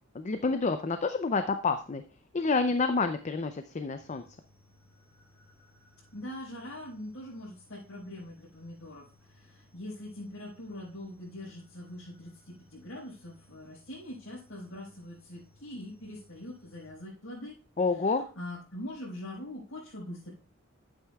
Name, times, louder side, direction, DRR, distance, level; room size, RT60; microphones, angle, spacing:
voice 1, 0.1-2.0 2.3-4.2 17.8-18.2, left 4 dB, 35° left, 9 dB, 0.5 m, -28 dB
sound 1, 4.0-16.9, left 2 dB, 15° left, 2.6 m, -63 dB
voice 2, 6.1-17.6 18.1-20.3, left 1 dB, 90° left, -8 dB, 4.5 m, -43 dB
11.0 x 9.0 x 2.3 m, 0.38 s
head